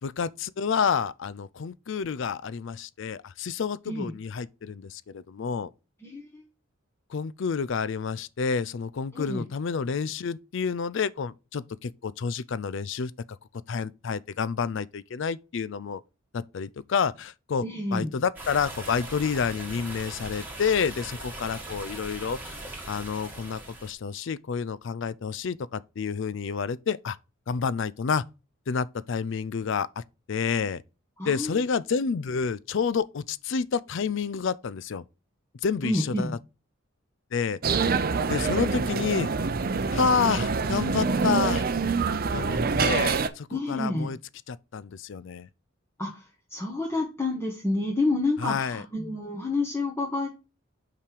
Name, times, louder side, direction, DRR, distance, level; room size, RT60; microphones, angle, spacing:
voice 1, 0.0-5.7 7.1-13.1 13.7-16.0 16.3-17.6 17.9-22.6 22.8-27.2 27.5-28.2 28.7-30.0 30.3-30.8 31.2-35.0 35.6-36.4 37.3-37.6 38.3-39.3 39.9-41.7 42.3-44.2 44.5-45.5 48.4-48.8, left 6 dB, 60° left, 0.4 m, -29 dB
voice 2, 6.0-6.4 9.1-9.4 17.6-18.1 31.2-31.5 35.8-36.4 43.5-44.1 46.0-46.2 46.5-50.3, left 2 dB, 10° left, 1.3 m, -29 dB
sound 1, 18.4-23.9, right 2 dB, 10° right, 1.8 m, -40 dB
sound 2, 37.6-43.3, right 4 dB, 45° right, 0.6 m, -26 dB
5.8 x 5.0 x 4.6 m
head